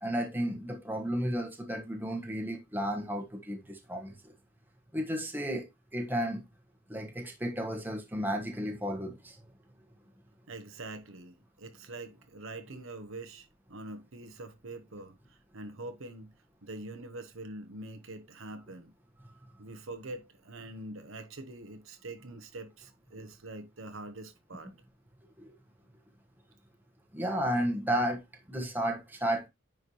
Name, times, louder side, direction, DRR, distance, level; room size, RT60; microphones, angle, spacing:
voice 1, 0.0-4.3 4.9-5.7 5.9-6.4 6.9-9.4 19.2-19.3 25.4-25.5 27.1-28.2 28.5-29.5, equal, 10° right, 1.3 m, -33 dB
voice 2, 10.5-16.3 16.6-18.9 19.6-24.7, right 2 dB, 70° right, 1.0 m, -44 dB
9.7 x 4.6 x 3.1 m
head